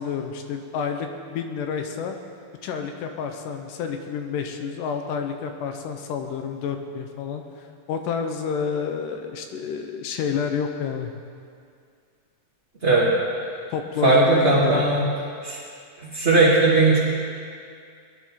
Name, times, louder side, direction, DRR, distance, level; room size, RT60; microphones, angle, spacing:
voice 1, 0.0-2.2 2.6-7.4 7.9-11.1 13.7-15.0, left 6 dB, 80° left, 5 dB, 2.4 m, -29 dB
voice 2, 14.0-15.1 15.4-15.6 16.0-17.0, right 3 dB, 25° right, -11 dB, 1.9 m, -18 dB
21.0 x 10.5 x 3.8 m, 2.3 s
omnidirectional pair, 3.9 m